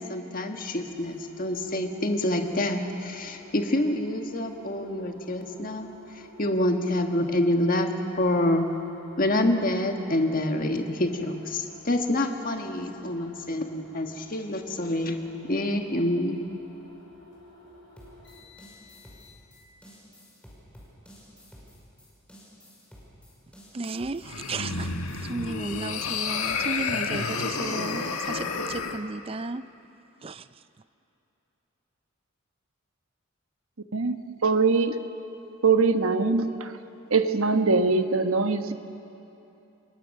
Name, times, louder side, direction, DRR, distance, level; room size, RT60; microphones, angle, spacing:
voice 1, 0.0-5.9 6.4-7.9 8.2-8.7 9.2-15.2 15.4-16.4, left 1 dB, 40° left, 4 dB, 1.6 m, -27 dB
sound 1, 0.6-19.6, left 1 dB, 60° left, 7.5 m, -51 dB
sound 2, 18.0-27.8, equal, 5° left, 5.5 m, -51 dB
voice 2, 23.7-29.6 30.2-30.5, right 3 dB, 25° right, 14 dB, 0.4 m, -34 dB
sound 3, 24.2-29.0, left 5 dB, 85° left, 1.5 m, -30 dB
voice 3, 34.4-35.0 35.6-36.7 37.1-38.7, right 4 dB, 80° right, 8 dB, 1.2 m, -22 dB
28.5 x 22.0 x 6.6 m, 2.9 s
head